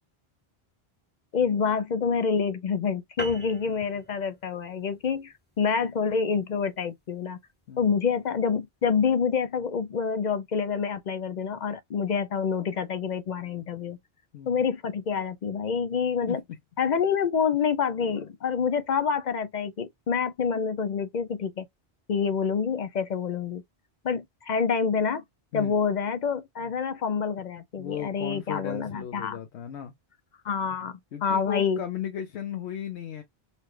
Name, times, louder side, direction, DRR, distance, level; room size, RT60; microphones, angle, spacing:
voice 1, 1.3-7.4 7.8-14.0 14.5-16.4 16.8-21.7 22.1-23.6 24.0-25.2 25.5-29.4 30.4-31.8, left 6 dB, 55° left, 0.6 m, -27 dB
sound 1, 3.2-7.9, equal, 10° left, 0.8 m, -42 dB
voice 2, 27.8-29.9 31.1-33.2, left 9 dB, 85° left, 0.9 m, -36 dB
4.1 x 2.2 x 3.1 m
omnidirectional pair, 1.1 m